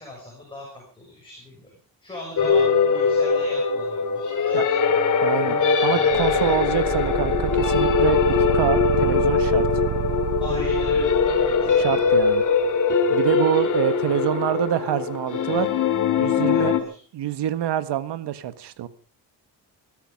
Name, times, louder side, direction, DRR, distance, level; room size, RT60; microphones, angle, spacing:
voice 1, 0.0-1.7 2.0-4.8 10.4-11.9 16.4-17.0, left 2 dB, 10° left, -2 dB, 6.0 m, -40 dB
sound 1, 2.4-16.8, left 5 dB, 45° left, 2.5 m, -21 dB
voice 2, 5.2-8.2 8.5-9.7 11.7-12.4 13.1-15.7 16.2-16.7 17.1-18.9, right 11 dB, 80° right, 13 dB, 1.6 m, -26 dB
sound 2, 6.1-12.3, right 9 dB, 45° right, 1.3 m, -29 dB
21.0 x 12.5 x 5.3 m, 0.43 s
cardioid pair, 175°, 41 cm